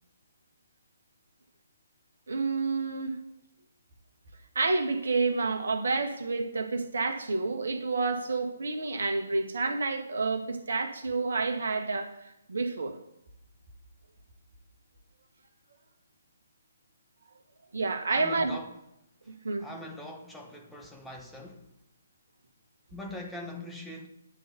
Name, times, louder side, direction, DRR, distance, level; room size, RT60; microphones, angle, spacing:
voice 1, 2.3-3.2 4.5-13.0 17.7-18.5 19.4-19.7, right 3 dB, 65° right, 1.2 m, -29 dB
voice 2, 18.1-18.8 19.6-21.7 22.9-24.1, left 1 dB, 5° left, 0.8 m, -42 dB
9.9 x 4.0 x 6.8 m
figure-of-eight pair, 135°, 0 cm